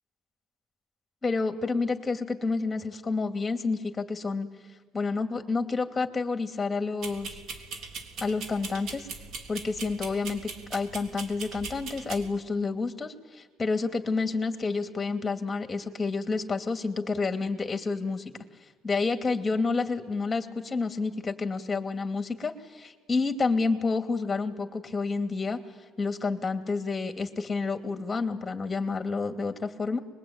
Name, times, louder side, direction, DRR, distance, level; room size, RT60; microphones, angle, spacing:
voice 1, 1.2-4.5 4.9-7.4 8.2-9.1 9.5-18.3 18.8-25.6 26.0-30.0, left 4 dB, 25° left, 6 dB, 2.6 m, -29 dB
sound 1, 7.0-12.3, right 4 dB, 70° right, 3.4 m, -40 dB
25.5 x 22.0 x 9.0 m, 1.5 s
supercardioid pair, 80°, 0 cm